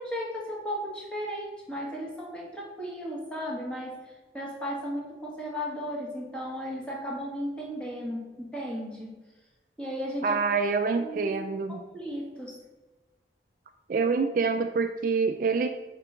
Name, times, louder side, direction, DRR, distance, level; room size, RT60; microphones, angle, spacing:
voice 1, 0.0-9.2 9.8-10.4 11.0-12.5, equal, 5° left, -4 dB, 1.3 m, -35 dB
voice 2, 10.2-11.8 13.9-15.7, right 4 dB, 50° right, 6 dB, 0.3 m, -26 dB
6.0 x 3.8 x 4.5 m, 1.2 s
head